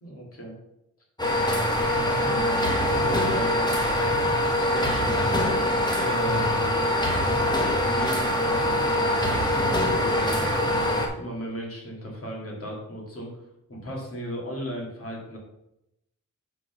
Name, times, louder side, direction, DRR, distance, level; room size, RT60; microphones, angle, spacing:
voice 1, 0.0-0.5 2.0-3.8 4.5-5.6 5.9-7.2 7.8-9.6 9.9-13.4 13.7-15.4, equal, 45° left, -2 dB, 2.4 m, -36 dB
sound 1, 1.2-11.1, left 1 dB, 15° left, 1.1 m, -23 dB
Strum, 3.1-7.2, equal, 75° left, 2.1 m, -46 dB
6.0 x 4.8 x 5.9 m, 0.85 s
wide cardioid pair, 155°, 31 cm